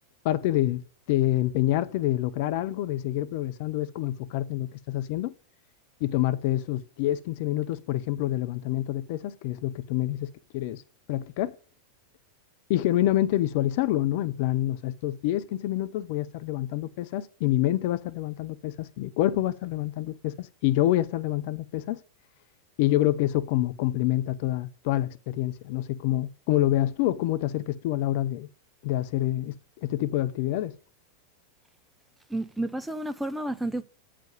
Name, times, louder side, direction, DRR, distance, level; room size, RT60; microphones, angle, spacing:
voice 1, 0.2-0.8 1.1-5.3 6.0-10.8 11.1-11.5 12.7-22.0 22.8-28.5 28.8-29.5 29.8-30.7, left 14 dB, 50° left, 0.6 m, -27 dB
voice 2, 32.3-33.8, right 1 dB, 5° right, 0.7 m, -31 dB
9.0 x 5.0 x 7.4 m
figure-of-eight pair, 90°, 0 cm